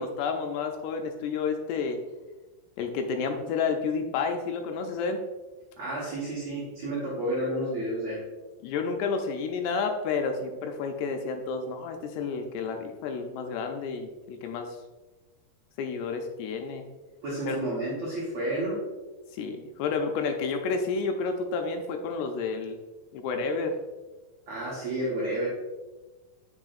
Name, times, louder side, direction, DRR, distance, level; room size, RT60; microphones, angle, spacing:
voice 1, 0.0-2.0 2.8-5.2 8.6-14.8 15.8-16.9 17.5-17.6 19.3-22.8 23.1-23.8, left 5 dB, 80° left, 4 dB, 2.5 m, -30 dB
voice 2, 5.8-8.2 17.2-18.8 24.5-25.5, right 1 dB, 70° right, -8 dB, 1.6 m, -31 dB
7.6 x 6.2 x 2.5 m, 1.2 s
omnidirectional pair, 5.0 m